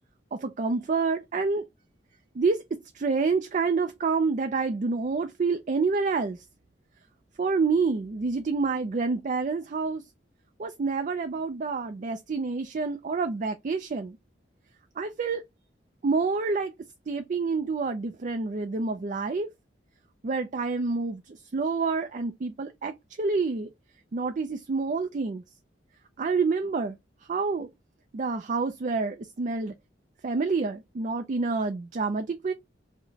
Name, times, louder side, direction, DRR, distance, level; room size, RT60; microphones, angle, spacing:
voice 1, 0.3-1.6 2.4-6.4 7.4-10.0 10.6-14.2 15.0-15.4 16.0-16.7 17.1-19.5 20.2-23.7 24.1-25.4 26.2-27.0 27.3-27.7 28.1-29.7 30.2-32.5, right 4 dB, 45° right, 0.4 m, -28 dB
4.8 x 2.1 x 2.7 m
head